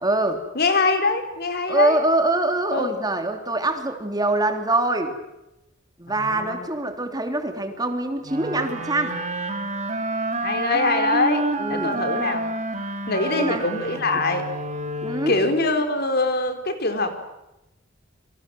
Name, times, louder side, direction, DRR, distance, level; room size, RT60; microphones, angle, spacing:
voice 1, 0.0-0.4 1.7-5.2 6.0-9.2 11.6-11.9 13.3-13.6 14.1-14.2 15.0-15.4, right 2 dB, 20° right, 6 dB, 3.2 m, -24 dB
voice 2, 0.5-2.0 2.7-2.9 6.1-6.7 10.4-12.4 13.1-14.4 15.3-17.1, left 3 dB, 55° left, 7 dB, 4.4 m, -23 dB
sound 1, 8.2-15.7, right 2 dB, 35° right, 3.9 m, -29 dB
28.5 x 25.5 x 7.9 m, 0.92 s
head